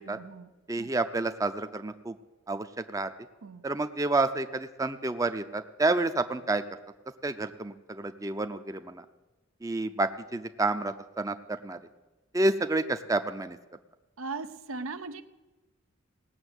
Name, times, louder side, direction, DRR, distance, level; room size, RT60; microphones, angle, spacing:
voice 1, 0.0-0.9 3.4-3.7 14.2-15.2, right 3 dB, 85° right, 10 dB, 0.7 m, -39 dB
voice 2, 0.7-2.2 2.5-3.1 3.6-6.6 7.2-9.0 9.6-11.8 12.3-13.6, right 2 dB, 15° right, 9 dB, 0.5 m, -29 dB
17.5 x 6.7 x 8.1 m, 1.1 s
head